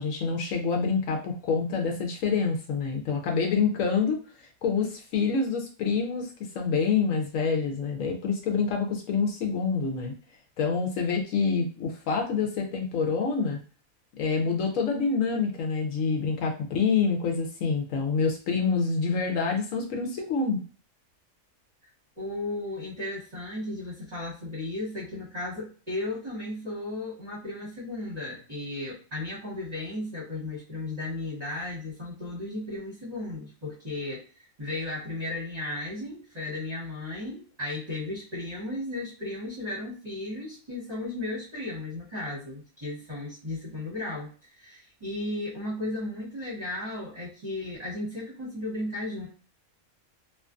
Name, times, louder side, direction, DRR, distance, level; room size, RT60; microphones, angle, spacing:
voice 1, 0.0-10.1 10.6-13.6 14.2-20.6, left 5 dB, 70° left, 1 dB, 0.9 m, -27 dB
voice 2, 22.2-49.3, left 2 dB, 30° right, -9 dB, 1.1 m, -35 dB
2.5 x 2.4 x 2.3 m, 0.37 s
omnidirectional pair, 1.5 m